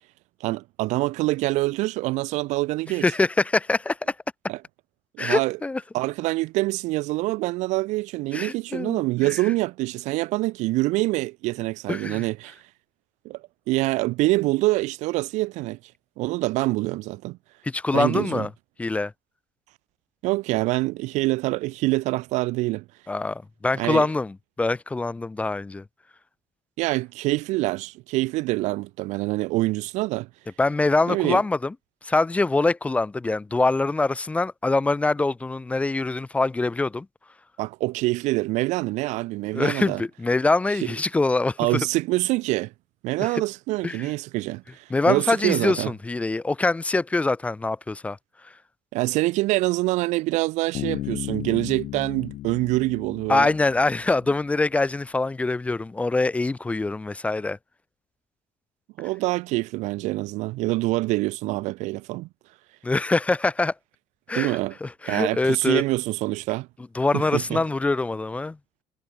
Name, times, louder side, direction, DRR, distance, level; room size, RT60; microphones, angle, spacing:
voice 1, 0.4-3.1 4.5-4.6 5.2-5.6 5.9-12.6 13.2-13.4 13.7-15.8 16.2-17.4 17.9-18.5 20.2-22.8 23.8-24.1 26.8-30.3 31.1-31.4 37.6-40.0 41.6-42.7 43.0-45.9 48.9-53.5 59.0-62.3 64.3-64.7 65.1-66.7 67.1-67.6, right 20 dB, 90° right, 0.9 m, -25 dB
voice 2, 3.0-4.1 5.2-5.8 8.3-9.3 11.9-12.3 17.6-18.5 18.8-19.1 23.1-25.8 30.6-31.7 32.0-37.1 39.5-41.8 43.2-43.3 43.8-44.1 44.9-48.2 53.3-57.6 62.8-63.7 64.3-65.8 66.9-68.6, left 3 dB, 10° left, 0.7 m, -24 dB
Bass guitar, 50.7-54.4, left 14 dB, 60° left, 3.4 m, -35 dB
cardioid pair, 165°, 12 cm